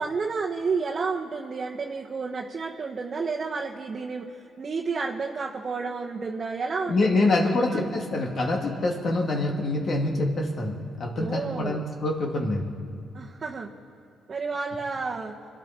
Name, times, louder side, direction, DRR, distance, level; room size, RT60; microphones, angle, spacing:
voice 1, 0.0-4.3 4.6-7.2 7.5-7.8 11.1-11.8 13.1-13.7 14.3-15.3, right 4 dB, 40° right, -2 dB, 1.3 m, -31 dB
voice 2, 6.9-12.6, left 2 dB, 50° left, 0 dB, 2.7 m, -25 dB
25.5 x 12.0 x 4.5 m, 2.6 s
cardioid pair, 90°, 0 cm